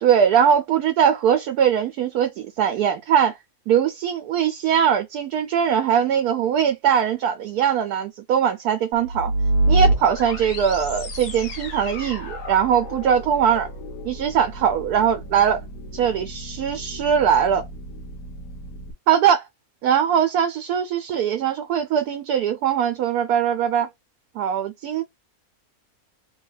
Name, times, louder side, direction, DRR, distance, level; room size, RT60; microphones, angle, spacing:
voice 1, 0.0-3.4 3.7-9.3 9.7-13.7 14.0-15.6 15.9-17.6 19.1-19.4 19.8-23.9 24.4-25.0, right 8 dB, 80° right, 1.1 m, -21 dB
sound 1, 8.9-18.9, right 2 dB, 90° left, 1.6 m, -28 dB
3.4 x 2.3 x 3.9 m
omnidirectional pair, 1.6 m